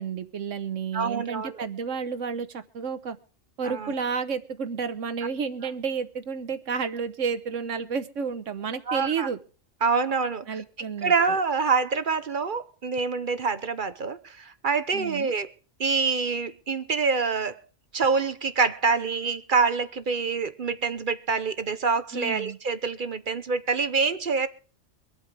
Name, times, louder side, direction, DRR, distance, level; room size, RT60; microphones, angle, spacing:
voice 1, 0.0-3.2 3.6-9.4 10.5-11.4 14.9-15.3 22.1-22.6, right 6 dB, 75° right, 1.4 m, -31 dB
voice 2, 0.9-1.5 3.6-3.9 8.9-9.3 9.8-10.6 11.0-15.5 15.8-17.6 17.9-24.5, right 5 dB, 45° right, 0.8 m, -26 dB
24.5 x 8.4 x 3.4 m
omnidirectional pair, 1.3 m